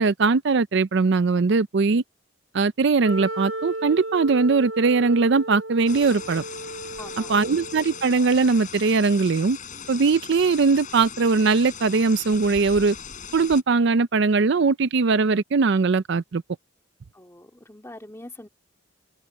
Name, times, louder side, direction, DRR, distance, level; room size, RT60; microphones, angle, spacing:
voice 1, 0.0-2.0 2.5-6.4 7.3-9.6 9.9-13.0 13.3-16.4, right 4 dB, 55° right, 0.5 m, -20 dB
Wind instrument woodwind instrument, 3.0-8.1, right 1 dB, 75° right, 1.8 m, -35 dB
sound 1, 5.9-13.6, left 7 dB, 40° left, 7.6 m, -39 dB
voice 2, 7.0-7.5 17.1-18.5, left 1 dB, 15° left, 2.1 m, -43 dB
head